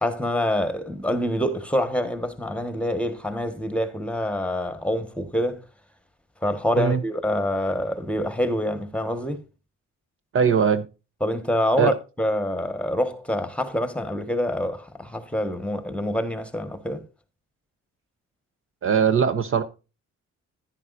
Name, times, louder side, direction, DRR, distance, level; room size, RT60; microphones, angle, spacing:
voice 1, 0.0-5.6 6.4-9.4 11.2-17.0, left 1 dB, 5° left, 1.4 m, -26 dB
voice 2, 10.3-10.9 11.8-11.9 18.8-19.6, right 6 dB, 45° right, 0.8 m, -20 dB
10.5 x 10.0 x 2.6 m
cardioid pair, 90°, 30 cm